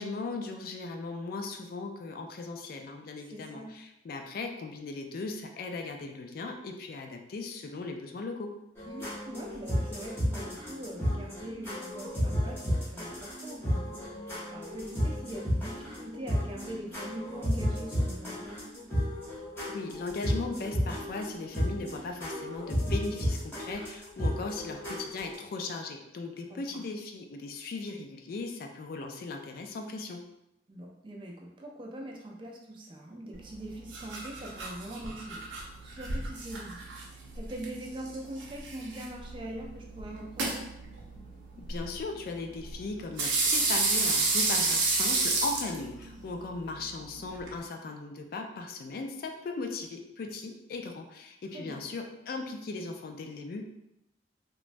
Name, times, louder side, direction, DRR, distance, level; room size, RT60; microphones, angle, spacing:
voice 1, 0.0-8.5 19.7-30.2 41.6-53.7, left 3 dB, 55° left, 4 dB, 0.3 m, -38 dB
voice 2, 3.3-3.7 8.9-18.6 26.5-26.9 30.7-36.8 37.1-40.7 51.5-51.8, right 1 dB, 25° right, -1 dB, 0.4 m, -42 dB
sound 1, 8.8-25.4, equal, 15° left, 0.8 m, -33 dB
sound 2, 33.3-47.6, right 3 dB, 85° right, 0.6 m, -32 dB
3.0 x 2.2 x 2.5 m, 0.84 s
head